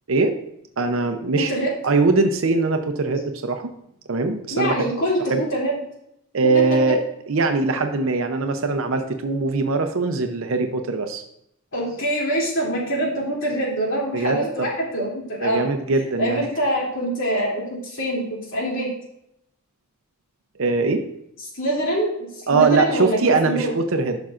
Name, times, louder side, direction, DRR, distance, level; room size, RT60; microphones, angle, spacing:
voice 1, 0.8-1.5 1.8-3.7 4.1-4.9 5.3-5.4 6.3-7.0 7.3-11.2 14.1-14.7 15.4-16.5 20.6-21.0 22.5-24.2, right 3 dB, 70° right, 6 dB, 0.6 m, -21 dB
voice 2, 1.4-1.7 4.5-5.8 6.5-6.9 11.7-15.7 16.2-18.9 21.5-23.7, right 1 dB, 60° left, -3 dB, 2.8 m, -24 dB
11.5 x 6.0 x 2.5 m, 0.77 s
head